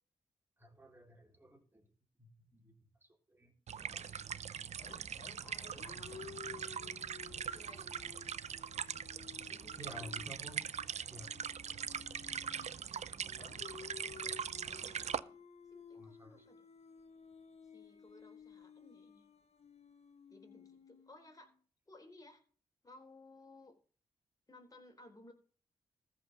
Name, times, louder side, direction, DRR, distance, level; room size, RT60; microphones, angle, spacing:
voice 1, 0.6-1.9 2.2-2.7 3.0-3.5 3.8-4.2 9.8-10.6 11.1-11.3 15.9-16.4, equal, 15° right, 4 dB, 3.8 m, -53 dB
sound 1, 3.7-15.2, right 8 dB, 65° right, 0.6 m, -42 dB
sound 2, 4.8-12.8 13.4-21.5, left 6 dB, 60° left, 1.1 m, -55 dB
voice 2, 5.4-7.0 7.3-7.9 9.5-10.2 12.8-15.4 15.7-16.6 17.6-19.3 20.3-21.5 21.9-22.4 22.8-23.7 24.5-25.3, left 2 dB, 30° left, 3 dB, 4.1 m, -59 dB
14.0 x 5.7 x 6.6 m, 0.41 s
cardioid pair, 55°, 13 cm